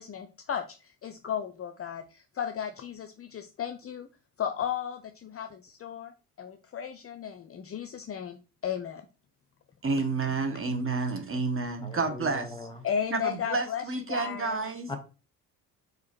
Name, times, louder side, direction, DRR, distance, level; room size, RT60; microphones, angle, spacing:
voice 1, 0.0-4.1 4.4-6.1 6.4-9.0 12.8-13.8 14.1-14.6, left 8 dB, 30° left, 0.8 m, -34 dB
voice 2, 9.8-12.7 13.1-14.9, right 4 dB, 25° right, 1.5 m, -30 dB
voice 3, 11.8-12.7 14.9-15.0, left 3 dB, 10° left, 2.1 m, -39 dB
4.8 x 4.8 x 6.1 m
figure-of-eight pair, 55°, 47 cm